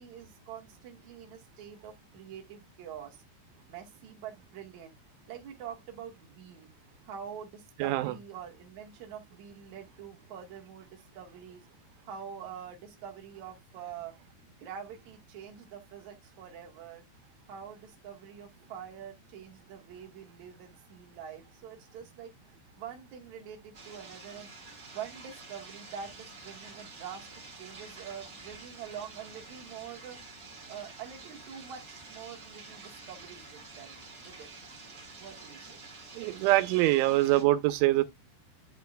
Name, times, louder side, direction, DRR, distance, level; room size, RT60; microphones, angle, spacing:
voice 1, 0.0-3.2 3.7-4.9 5.3-6.7 7.1-11.6 12.1-14.2 14.6-17.0 17.5-22.3 22.8-24.5 24.9-30.2 30.7-34.5 35.2-35.8, right 8 dB, 60° right, 2.0 m, -45 dB
voice 2, 7.8-8.1 36.2-38.0, right 17 dB, 85° right, 3.1 m, -24 dB
sound 1, 23.7-37.4, right 3 dB, 30° right, 1.8 m, -49 dB
11.0 x 4.5 x 2.3 m
omnidirectional pair, 5.4 m